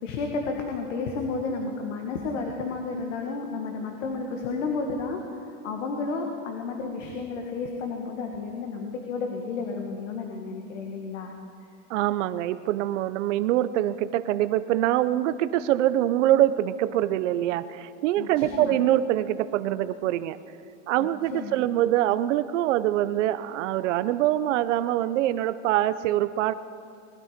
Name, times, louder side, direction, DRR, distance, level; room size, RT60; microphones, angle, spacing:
voice 1, 0.0-11.3 18.2-18.8 21.3-21.6, left 4 dB, 80° left, 2 dB, 1.9 m, -32 dB
voice 2, 11.9-20.4 20.9-26.5, right 13 dB, 75° right, 12 dB, 0.7 m, -24 dB
20.5 x 12.5 x 5.1 m, 2.5 s
supercardioid pair, 150°, 36 cm